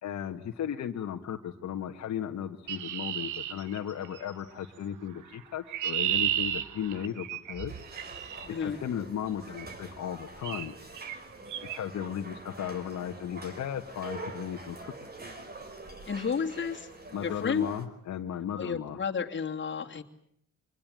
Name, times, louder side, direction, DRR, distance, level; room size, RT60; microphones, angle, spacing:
voice 1, 0.0-7.7 8.6-10.8 11.7-14.9 17.1-19.0, left 9 dB, 65° left, 3 dB, 1.7 m, -36 dB
Chirp tweet, 2.7-4.3 5.3-8.5 9.6-9.8 10.4-10.7 11.0-11.2 11.5-11.8, right 11 dB, 85° right, 1.4 m, -33 dB
sound 1, 7.7-17.8, right 2 dB, 30° right, 4.7 m, -45 dB
voice 2, 8.4-8.8 16.1-16.9 17.2-17.7 18.6-20.0, left 6 dB, 40° left, 3 dB, 2.7 m, -31 dB
25.5 x 21.0 x 9.0 m, 0.71 s
cardioid pair, 90°, 30 cm